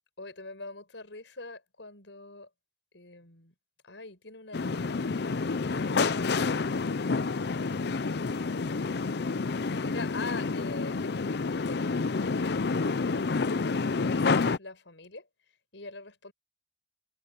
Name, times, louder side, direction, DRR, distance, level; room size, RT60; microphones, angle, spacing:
voice 1, 0.2-2.5 2.9-3.5 3.8-6.7 9.8-15.3 15.7-16.3, left 3 dB, 75° left, 5.9 m, -44 dB
sound 1, 4.5-14.6, left 4 dB, 60° left, 0.6 m, -29 dB
head